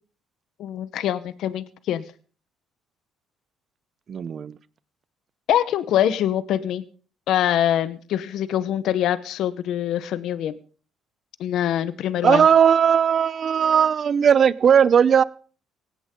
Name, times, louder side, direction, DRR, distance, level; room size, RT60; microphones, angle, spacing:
voice 1, 0.6-2.0 5.5-6.8 7.3-10.5 11.4-12.4, left 11 dB, 70° left, 14 dB, 1.0 m, -24 dB
voice 2, 4.1-4.5 12.2-15.2, right 7 dB, 45° right, 19 dB, 0.8 m, -17 dB
18.0 x 17.0 x 3.8 m, 0.40 s
cardioid pair, 100°, 0 cm